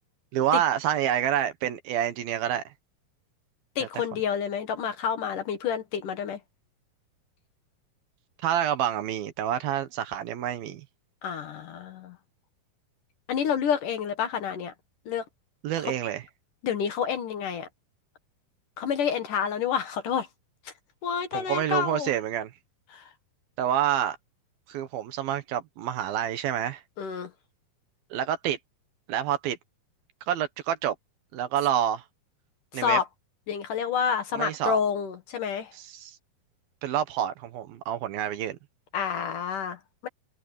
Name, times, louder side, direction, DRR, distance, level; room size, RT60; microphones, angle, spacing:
voice 1, 0.3-2.6 3.8-3.9 8.4-10.8 15.6-16.2 21.3-22.5 23.6-24.2 24.7-26.8 28.1-28.6 29.1-29.6 30.3-31.0 31.3-32.0 32.7-33.0 34.4-34.8 35.8-36.2 36.8-38.6, right 10 dB, 70° right, 2.9 m, -28 dB
voice 2, 3.8-6.4 11.2-12.2 13.3-14.7 15.1-15.3 15.8-15.9 16.6-17.7 18.8-20.3 20.7-20.8 21.0-22.1 22.9-23.1 27.0-27.3 32.7-33.0 33.5-35.7 38.9-40.1, left 7 dB, 60° left, 2.8 m, -29 dB
omnidirectional pair, 4.6 m